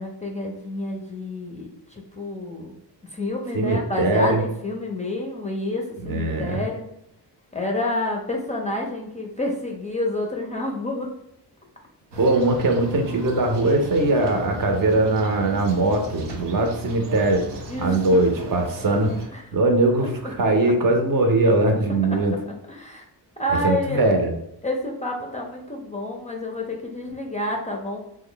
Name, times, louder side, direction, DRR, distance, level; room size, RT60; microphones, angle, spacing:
voice 1, 0.0-2.7 3.0-6.8 7.5-11.1 17.7-18.2 19.3-19.4 22.1-23.1 23.4-24.3 24.6-28.0, left 1 dB, 20° left, 0 dB, 0.4 m, -29 dB
voice 2, 3.5-4.4 6.0-6.7 12.2-17.5 17.8-22.3 23.6-24.3, right 2 dB, 55° right, 4 dB, 0.7 m, -21 dB
sound 1, 12.1-19.3, right 2 dB, 90° right, 0.8 m, -36 dB
3.0 x 2.2 x 3.8 m, 0.79 s
cardioid pair, 115°, 41 cm